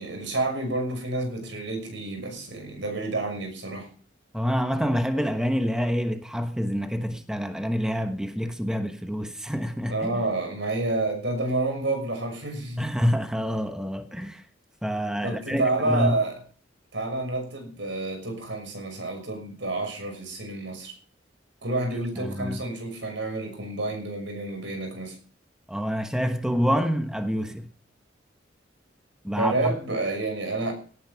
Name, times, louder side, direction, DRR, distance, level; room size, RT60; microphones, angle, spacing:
voice 1, 0.0-3.9 9.9-12.9 15.2-16.4 16.9-20.9 21.6-25.2 29.4-30.7, right 2 dB, 75° right, 6.1 m, -29 dB
voice 2, 4.3-10.2 12.8-14.4 14.8-16.2 22.2-22.6 25.7-27.7 29.2-29.7, equal, 5° right, 1.2 m, -27 dB
17.5 x 9.5 x 5.8 m
head